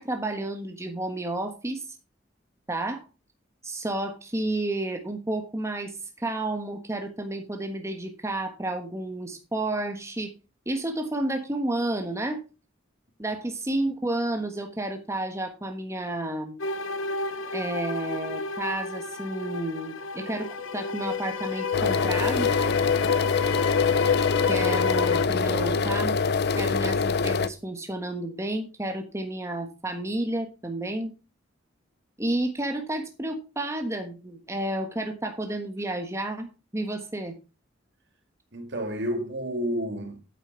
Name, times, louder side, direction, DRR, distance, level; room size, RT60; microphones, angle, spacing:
voice 1, 0.0-1.8 2.7-3.0 3.6-10.3 10.6-12.4 13.2-16.6 17.5-22.5 24.4-26.2 26.5-31.1 32.2-37.4, right 1 dB, 15° right, 1.4 m, -31 dB
sound 1, 16.6-25.3, left 6 dB, 85° left, 0.9 m, -29 dB
sound 2, 21.7-27.5, left 4 dB, 55° left, 0.7 m, -25 dB
voice 2, 25.4-25.9 38.5-40.2, equal, 65° right, 2.5 m, -31 dB
8.8 x 8.8 x 4.4 m
head